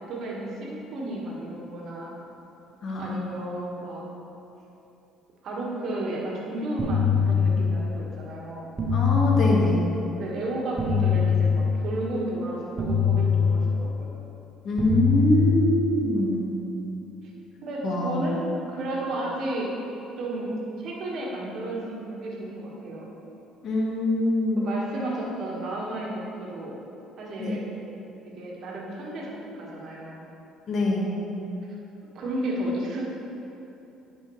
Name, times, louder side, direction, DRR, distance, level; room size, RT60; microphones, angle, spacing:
voice 1, 0.1-2.1 3.0-4.0 5.4-8.6 10.2-14.1 17.6-19.7 20.2-23.1 24.5-26.7 27.2-27.6 28.4-29.3 29.6-30.2 32.1-33.0, right 1 dB, 60° right, -3 dB, 1.7 m, -32 dB
voice 2, 2.8-3.2 8.9-9.9 14.6-16.6 17.8-18.4 23.6-24.7 27.4-27.5 30.7-31.1, left 1 dB, 50° left, -2 dB, 1.5 m, -24 dB
sound 1, 6.8-8.0 8.8-10.0 10.8-12.0 12.8-14.0 14.8-16.0, left 6 dB, 30° right, 1.6 m, -23 dB
9.9 x 5.5 x 3.3 m, 2.9 s
hypercardioid pair, 60°, 0 cm